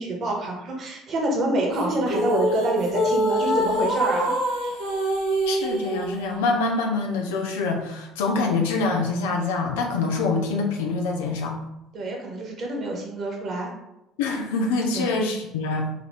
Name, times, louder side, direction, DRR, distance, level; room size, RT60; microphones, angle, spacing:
voice 1, 0.0-4.3 11.9-13.7 14.9-15.1, right 2 dB, 50° right, 0 dB, 1.6 m, -26 dB
sound 1, 1.7-6.3, equal, 90° right, 1.5 m, -25 dB
voice 2, 5.5-11.6 14.2-15.9, left 3 dB, 75° left, 2 dB, 0.7 m, -25 dB
4.9 x 2.9 x 3.3 m, 0.88 s
hypercardioid pair, 60°, 0 cm